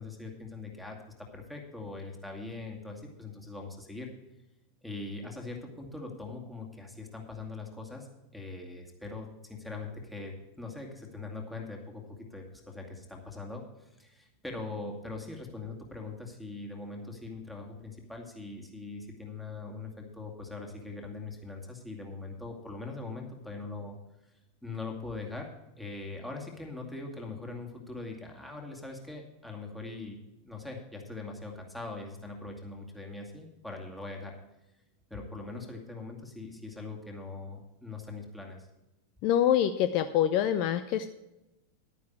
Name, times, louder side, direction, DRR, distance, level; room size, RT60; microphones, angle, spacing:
voice 1, 0.0-4.1 4.8-8.1 8.3-24.0 24.6-25.5 25.8-30.2 30.4-34.4 35.1-38.7, left 3 dB, 5° left, 0 dB, 2.2 m, -41 dB
voice 2, 39.2-41.1, left 10 dB, 45° left, 10 dB, 0.6 m, -25 dB
11.5 x 9.4 x 4.7 m, 0.94 s
figure-of-eight pair, 90°, 0 cm